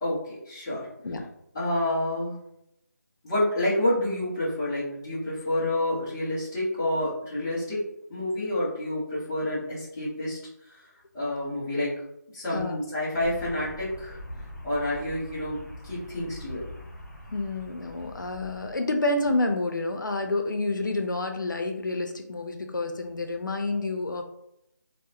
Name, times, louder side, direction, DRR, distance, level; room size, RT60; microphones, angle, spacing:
voice 1, 0.0-0.9 1.5-2.5 3.2-7.8 8.1-10.8 11.1-11.9 12.3-14.2 14.6-16.7, left 1 dB, 10° left, -11 dB, 0.5 m, -29 dB
sound 1, 13.1-18.7, equal, 60° left, 0.8 m, -43 dB
voice 2, 17.3-24.2, left 2 dB, 90° left, 5 dB, 0.5 m, -29 dB
2.8 x 2.0 x 2.3 m, 0.80 s
figure-of-eight pair, 170°, 10 cm